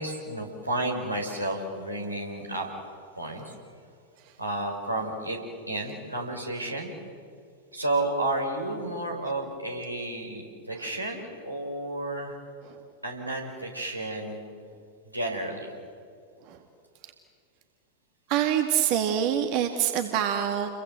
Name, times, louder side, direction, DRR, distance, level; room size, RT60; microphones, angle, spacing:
voice 1, 0.0-2.7 3.2-3.5 4.4-5.4 5.7-6.9 7.7-12.4 13.0-14.4 15.0-15.7, right 1 dB, 85° right, 0 dB, 5.2 m, -31 dB
voice 2, 18.3-20.8, right 10 dB, 45° right, 6 dB, 2.0 m, -25 dB
30.0 x 23.0 x 7.7 m, 2.4 s
figure-of-eight pair, 90°, 0 cm